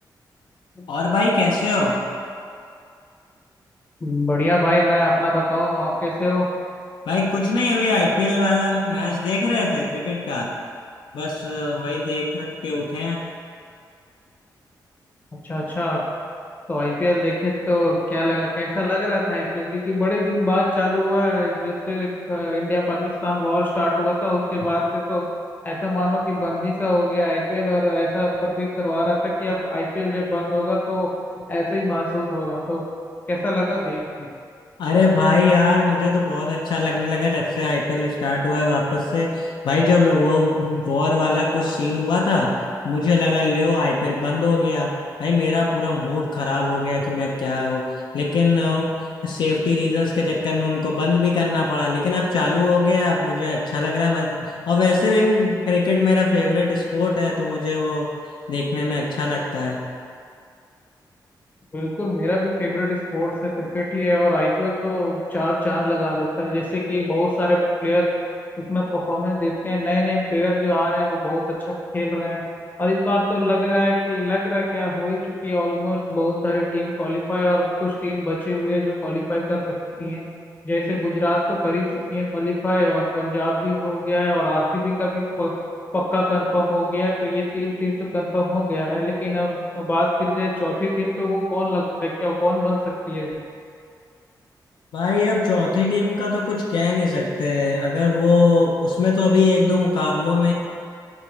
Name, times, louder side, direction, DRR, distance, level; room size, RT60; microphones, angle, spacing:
voice 1, 0.9-2.0 7.1-10.5 11.1-13.2 34.8-42.5 42.8-44.9 45.2-47.9 48.1-48.9 49.2-58.1 58.5-59.8 94.9-100.5, left 3 dB, 85° left, -2 dB, 0.5 m, -21 dB
voice 2, 4.0-6.5 15.4-16.0 16.7-25.2 25.6-31.1 31.5-32.8 33.3-34.3 61.7-68.1 68.6-71.4 71.7-72.4 72.8-79.6 80.0-80.2 80.6-85.5 85.9-92.8 93.1-93.4, left 1 dB, 25° left, -4 dB, 0.6 m, -23 dB
4.2 x 3.6 x 3.0 m, 2.3 s
wide cardioid pair, 140°, 8 cm